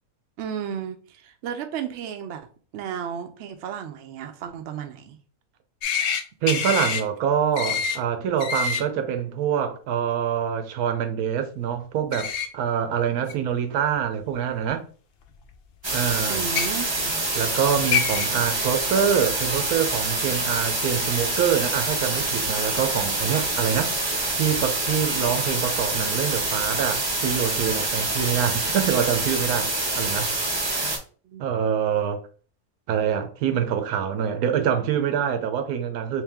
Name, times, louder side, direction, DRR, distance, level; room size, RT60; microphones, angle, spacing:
voice 1, 0.4-2.5 2.7-5.2 16.3-17.2 31.2-31.5, right 8 dB, 65° right, 0.7 m, -33 dB
sound 1, 5.8-6.2 6.5-7.0 7.6-8.0 8.4-8.8 12.1-12.5 13.3-13.4 14.6-14.7 16.4-16.7 17.6-17.7 17.9-18.3, left 7 dB, 70° left, 0.6 m, -25 dB
voice 2, 6.4-14.8 15.9-16.5 17.3-29.7 29.9-30.4 30.8-30.9 31.4-32.2 32.9-36.2, right 8 dB, 85° right, 1.1 m, -25 dB
sound 2, 15.8-31.0, right 2 dB, 25° right, 0.6 m, -26 dB
3.3 x 2.8 x 3.4 m
omnidirectional pair, 1.5 m